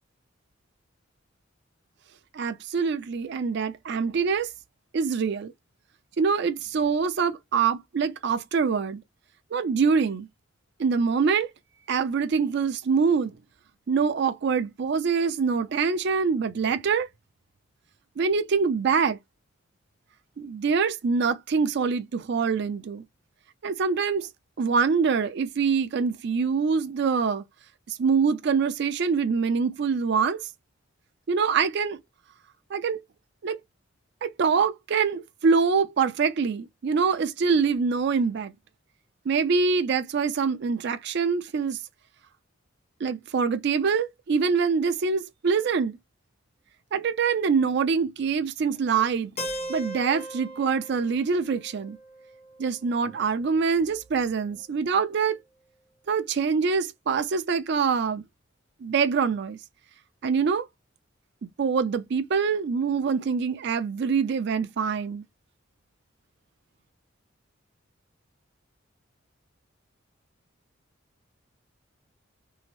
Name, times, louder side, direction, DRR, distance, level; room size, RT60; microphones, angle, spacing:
voice 1, 2.3-4.5 4.9-5.5 6.2-9.0 9.5-10.3 10.8-11.5 11.9-13.4 13.9-17.1 18.2-19.2 20.4-23.0 23.6-24.3 24.6-27.4 27.9-30.5 31.3-32.0 32.7-33.0 33.4-33.6 34.2-38.5 39.3-41.8 43.0-46.0 46.9-49.3 49.7-52.0 52.6-55.4 56.1-58.2 58.8-59.6 60.2-60.7 61.6-65.2, right 5 dB, 60° right, 0.4 m, -25 dB
Keyboard (musical), 49.4-53.3, equal, 30° left, 0.6 m, -38 dB
2.7 x 2.0 x 2.9 m
head